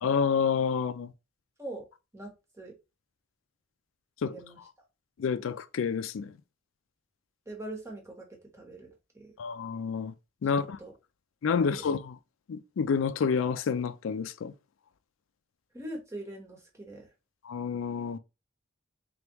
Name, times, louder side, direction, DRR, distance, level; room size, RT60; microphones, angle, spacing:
voice 1, 0.0-1.1 4.2-4.4 5.2-6.3 9.4-10.1 10.4-10.8 11.4-12.2 12.5-14.5 17.4-18.2, left 6 dB, 85° left, 0.4 m, -29 dB
voice 2, 2.1-2.7 4.2-4.6 7.5-8.3 8.5-9.3 10.5-10.9 11.6-11.7 15.7-17.1, right 1 dB, 15° right, 1.1 m, -42 dB
3.5 x 3.4 x 3.0 m
head